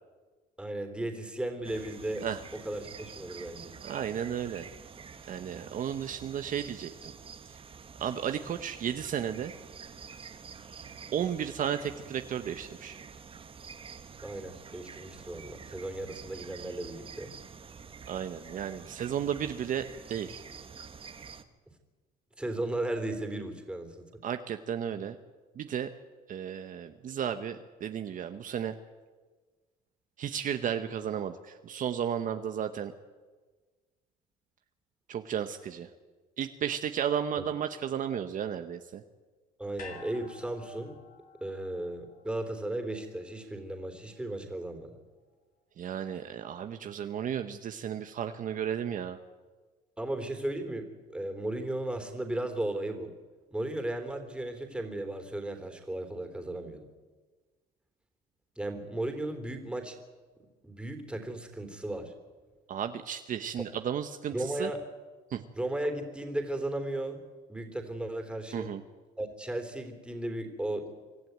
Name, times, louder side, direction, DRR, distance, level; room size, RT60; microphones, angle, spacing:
voice 1, 0.6-2.2 2.6-3.7 14.2-17.3 22.4-24.0 37.4-37.5 39.6-41.0 41.4-44.9 50.0-53.1 53.5-56.8 58.6-60.0 60.6-62.1 64.3-64.8 65.5-67.2 67.5-68.7 69.2-70.9, right 1 dB, 5° right, 6 dB, 3.4 m, -35 dB
sound 1, 1.6-21.4, right 6 dB, 35° right, 1.3 m, -48 dB
voice 2, 3.8-4.7 5.3-7.1 8.0-9.5 11.1-13.0 18.1-20.4 24.2-25.2 25.6-25.9 26.3-28.7 30.2-32.9 35.1-35.9 36.4-39.0 45.8-49.2 62.7-64.7 65.3-65.4 68.5-68.8, right 9 dB, 50° right, 8 dB, 1.0 m, -33 dB
sound 2, 39.8-44.1 44.4-44.5, left 5 dB, 55° left, 3.4 m, -51 dB
25.0 x 12.5 x 9.4 m, 1.4 s
cardioid pair, 110°, 17 cm